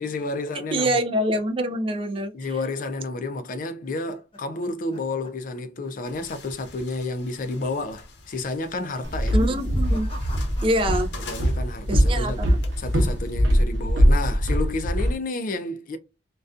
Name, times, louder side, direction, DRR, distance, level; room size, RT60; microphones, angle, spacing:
voice 1, 0.0-0.9 2.3-9.4 11.3-12.5 12.8-16.0, left 2 dB, 45° left, 0.4 m, -31 dB
voice 2, 0.7-2.3 9.3-10.1 10.6-11.1 11.9-12.6, right 1 dB, 30° right, 0.3 m, -25 dB
sound 1, 3.4-5.9 6.1-6.5 6.8-6.9 7.7-8.1 8.9-11.4 11.6-12.2, equal, 30° left, 0.8 m, -44 dB
sound 2, 6.0-13.4, left 3 dB, 70° left, 0.7 m, -45 dB
Walk footsteps, 9.0-15.1, equal, 90° right, 0.7 m, -22 dB
2.5 x 2.2 x 2.3 m
head